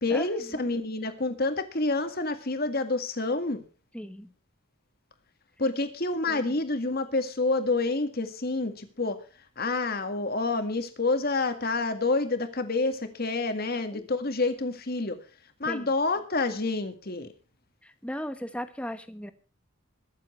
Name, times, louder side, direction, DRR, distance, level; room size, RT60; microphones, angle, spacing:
voice 1, 0.0-3.6 5.6-9.2 9.6-15.2 15.6-17.3, left 3 dB, 45° left, 8 dB, 1.9 m, -28 dB
voice 2, 3.9-4.3 6.3-6.6 13.9-14.1 15.6-15.9 17.8-19.3, equal, 5° left, 10 dB, 1.1 m, -37 dB
22.5 x 7.6 x 4.4 m, 0.37 s
head